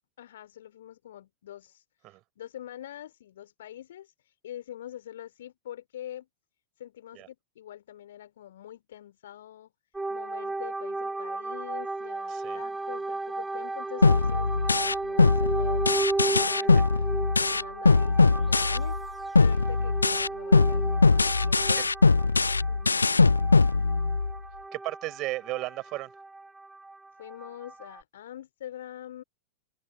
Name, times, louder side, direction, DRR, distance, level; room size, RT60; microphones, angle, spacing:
voice 1, 0.2-6.3 6.8-9.7 10.1-16.9 17.5-19.0 19.4-22.1 22.7-23.1 27.2-29.2, left 11 dB, 60° left, 3.6 m, -45 dB
sound 1, 9.9-28.0, right 2 dB, 10° right, 2.8 m, -34 dB
voice 2, 12.3-12.6 16.8-16.9 24.7-26.1, right 19 dB, 40° right, 5.0 m, -35 dB
sound 2, 14.0-19.0 19.3-24.4, left 4 dB, 80° left, 0.3 m, -22 dB
open air
figure-of-eight pair, 90°, 0 cm